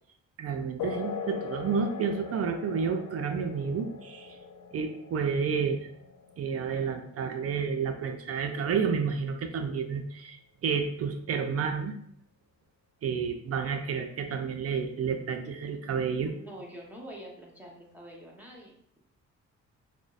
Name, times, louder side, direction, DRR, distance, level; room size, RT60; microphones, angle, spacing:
voice 1, 0.4-4.4 4.7-5.9 6.4-11.9 13.0-16.3, right 6 dB, 55° right, 6 dB, 0.5 m, -30 dB
sound 1, 0.8-8.8, left 6 dB, 85° left, 0.6 m, -41 dB
voice 2, 15.8-19.0, right 1 dB, 5° right, -3 dB, 0.9 m, -47 dB
6.1 x 2.1 x 2.4 m, 0.68 s
cardioid pair, 90°, 30 cm